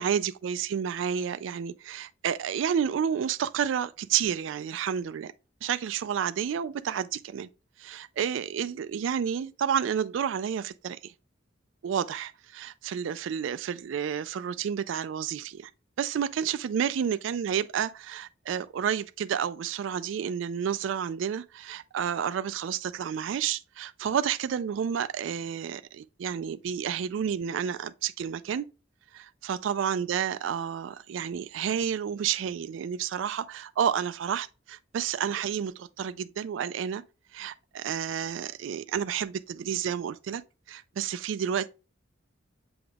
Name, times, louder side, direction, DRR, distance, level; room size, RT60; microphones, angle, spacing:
voice 1, 0.0-5.3 5.6-7.5 7.8-11.1 11.8-15.7 16.0-28.7 29.1-37.0 37.3-40.4 40.7-41.7, right 8 dB, 85° right, 0.3 m, -30 dB
7.7 x 3.5 x 3.5 m
head